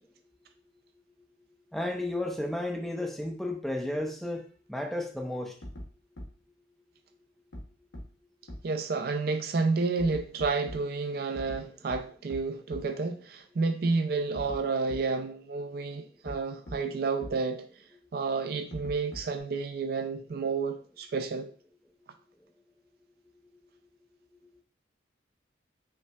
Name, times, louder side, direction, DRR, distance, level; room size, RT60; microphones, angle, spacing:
voice 1, 1.7-4.4 4.7-5.5, left 1 dB, ahead, 0.5 m, -32 dB
sound 1, 5.6-5.8 6.2-6.3 7.5-7.6 7.9-8.0 8.5-8.6 10.0-10.8 11.3-11.6 11.9-12.0 12.3-12.4 12.7-12.8 14.3-14.6 14.9-15.0 16.3-16.4 16.7-16.8 17.2-17.3 18.7-19.4, equal, 80° left, 0.9 m, -40 dB
voice 2, 8.6-17.6 18.1-21.5, right 4 dB, 50° right, 0.4 m, -30 dB
5.5 x 3.1 x 2.3 m
head